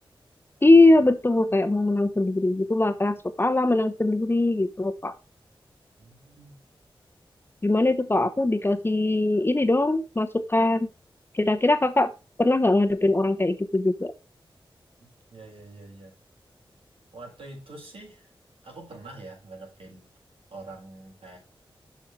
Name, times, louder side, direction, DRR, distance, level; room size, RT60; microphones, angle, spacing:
voice 1, 0.6-5.1 7.6-10.9 11.3-12.1 12.4-14.1, left 2 dB, 25° left, 9 dB, 1.0 m, -21 dB
voice 2, 6.0-6.6 15.3-16.2 17.1-18.3 18.6-20.1 20.5-21.4, right 2 dB, 85° right, -2 dB, 4.5 m, -44 dB
7.1 x 5.7 x 4.6 m, 0.30 s
wide cardioid pair, 65°, 9 cm